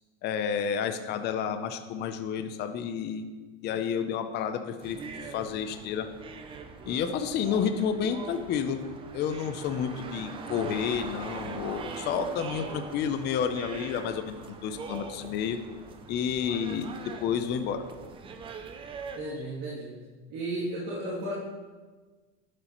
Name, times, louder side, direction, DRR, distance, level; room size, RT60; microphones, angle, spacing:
voice 1, 0.2-3.2 3.6-5.0 5.3-6.1 6.8-8.8 9.1-15.6 16.1-17.8, left 7 dB, 30° left, 8 dB, 0.6 m, -30 dB
sound 1, 4.8-19.2, right 5 dB, 15° right, 0.4 m, -42 dB
voice 2, 19.2-20.0 20.3-21.3, right 1 dB, 50° right, -8 dB, 2.8 m, -34 dB
11.5 x 7.6 x 3.0 m, 1.3 s
supercardioid pair, 145°, 34 cm